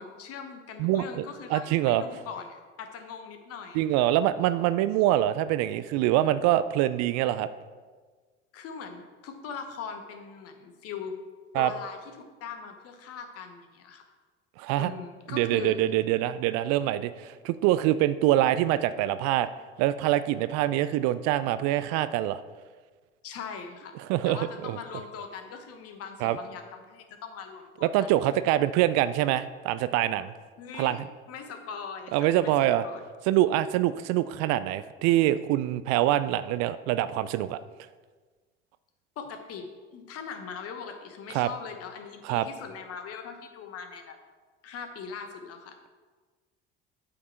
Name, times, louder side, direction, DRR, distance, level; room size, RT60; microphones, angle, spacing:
voice 1, 0.0-3.9 8.5-11.1 11.5-14.0 14.8-15.7 23.2-23.9 24.2-28.1 30.6-31.0 31.3-32.5 32.8-33.0 39.2-44.2 44.6-45.8, left 6 dB, 50° left, 6 dB, 1.1 m, -41 dB
voice 2, 0.8-1.2 1.5-2.0 3.7-7.5 11.5-11.7 14.6-14.9 15.3-19.5 19.8-22.4 24.0-24.8 26.2-26.4 27.8-30.3 30.7-31.1 32.1-32.9 33.3-37.6 41.3-41.5 42.2-42.5, right 13 dB, 60° right, 14 dB, 0.5 m, -25 dB
8.5 x 5.3 x 4.4 m, 1.4 s
hypercardioid pair, 65°, 30 cm